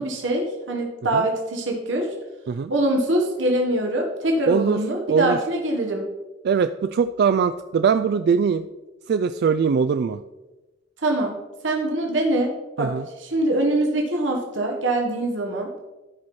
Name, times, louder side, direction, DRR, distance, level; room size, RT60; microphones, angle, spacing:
voice 1, 0.0-2.1 2.7-6.1 11.0-11.4 11.6-12.5 12.8-15.7, right 1 dB, 85° right, 1 dB, 1.4 m, -23 dB
voice 2, 4.5-4.8 5.1-5.4 6.4-8.7 9.1-10.2 12.8-13.1, right 6 dB, 60° right, 10 dB, 0.3 m, -21 dB
13.0 x 4.8 x 4.2 m, 1.1 s
head